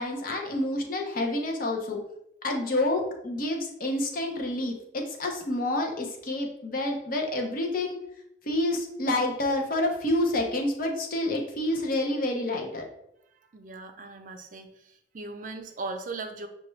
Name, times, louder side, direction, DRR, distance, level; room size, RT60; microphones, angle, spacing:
voice 1, 0.0-2.0 2.4-8.0 8.5-12.8, left 1 dB, 50° left, 2 dB, 0.6 m, -28 dB
voice 2, 13.5-14.7 15.1-16.5, right 3 dB, 45° right, 6 dB, 0.4 m, -38 dB
5.7 x 2.2 x 3.1 m, 0.80 s
head